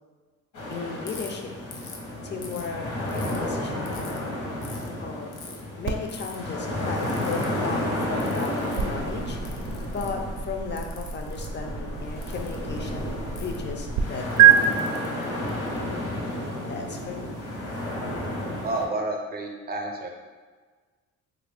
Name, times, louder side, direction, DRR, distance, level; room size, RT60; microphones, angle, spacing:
sound 1, 0.5-18.9, left 1 dB, 70° left, 1.0 m, -32 dB
voice 1, 0.7-1.5 2.2-4.3 5.0-9.4 9.9-14.6 16.7-17.3, left 4 dB, 35° left, 3 dB, 0.4 m, -35 dB
Ratchet pawl, 1.1-1.3 1.7-2.0 2.4-3.4 3.9-4.2 4.6-4.9 5.3-5.6 6.1-6.4 7.0-7.5 8.2-8.9 9.5-10.2 10.8-11.5 12.2-12.6 13.4-13.6 14.3-15.8, left 5 dB, 85° left, 0.6 m, -44 dB
sound 2, 5.8-14.0 14.4-14.5, right 11 dB, 75° right, 0.5 m, -26 dB
voice 2, 18.6-20.1, right 2 dB, 30° right, 2 dB, 0.6 m, -30 dB
2.9 x 2.5 x 3.3 m, 1.4 s
cardioid pair, 90°, 30 cm